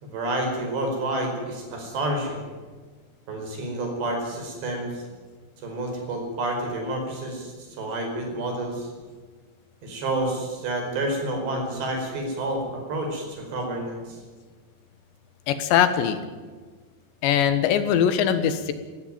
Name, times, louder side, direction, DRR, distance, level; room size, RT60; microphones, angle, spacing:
voice 1, 0.0-2.5 3.3-5.1 5.6-8.9 9.8-14.2, right 1 dB, 75° right, 2 dB, 7.2 m, -29 dB
voice 2, 15.5-16.2 17.2-18.7, left 9 dB, 85° left, 10 dB, 3.7 m, -21 dB
17.5 x 17.5 x 9.3 m, 1.4 s
omnidirectional pair, 5.0 m